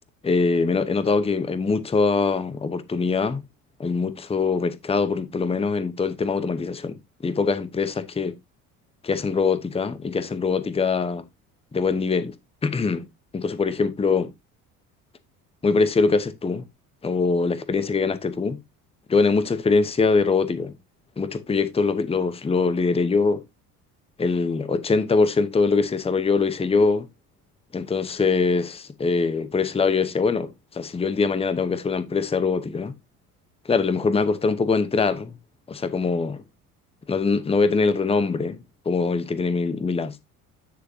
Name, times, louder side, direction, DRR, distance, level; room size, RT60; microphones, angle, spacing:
voice 1, 0.2-3.4 3.8-8.4 9.0-11.2 11.7-12.3 12.6-13.1 13.3-14.3 15.6-16.7 17.0-18.6 19.1-20.7 21.2-23.4 24.2-27.1 27.7-32.9 33.6-35.4 35.7-36.4 37.1-40.2, left 4 dB, 15° left, 0.9 m, -23 dB
9.4 x 6.5 x 2.7 m
figure-of-eight pair, 55°, 45 cm